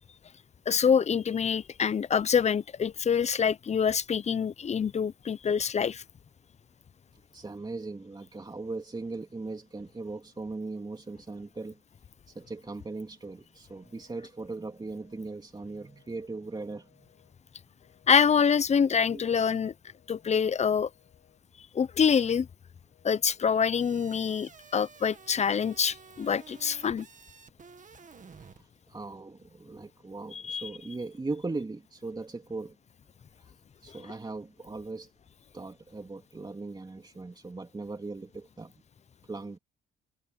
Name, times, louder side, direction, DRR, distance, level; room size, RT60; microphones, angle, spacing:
voice 1, 0.7-6.0 18.1-19.7 20.1-20.9 21.7-22.5 23.0-27.1 30.3-30.7, left 7 dB, 35° left, 0.7 m, -26 dB
voice 2, 7.1-11.8 12.3-17.0 19.1-19.2 28.3-32.8 33.4-33.5 33.8-35.1 35.5-38.7 39.3-39.6, right 3 dB, 20° right, 2.8 m, -39 dB
Telephone, 13.7-14.3 14.7-15.3 15.8-16.3 16.8-17.4 17.8-18.4 18.8-19.4 19.8-20.4 20.9-21.4 21.9-22.5 22.9-23.5 23.9-24.5 24.9-25.5 25.9-26.5, left 12 dB, 75° left, 7.6 m, -66 dB
sound 1, 23.8-28.6, right 6 dB, 40° right, 1.8 m, -52 dB
cardioid pair, 90°, 20 cm